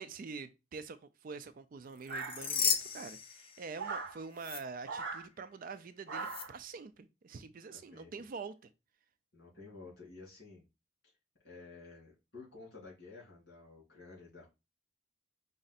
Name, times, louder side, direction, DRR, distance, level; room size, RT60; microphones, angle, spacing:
voice 1, 0.0-8.7, right 4 dB, 45° right, 0.4 m, -46 dB
sound 1, 2.0-4.0 4.4-4.6 6.2-6.4, left 7 dB, 30° left, 0.5 m, -35 dB
sound 2, 2.1-2.8 3.8-4.2 4.8-5.3 6.1-6.6, right 4 dB, 60° right, 0.9 m, -40 dB
voice 2, 7.7-8.1 9.3-10.6 11.4-14.5, left 3 dB, 55° left, 3.1 m, -52 dB
5.0 x 2.5 x 4.1 m
head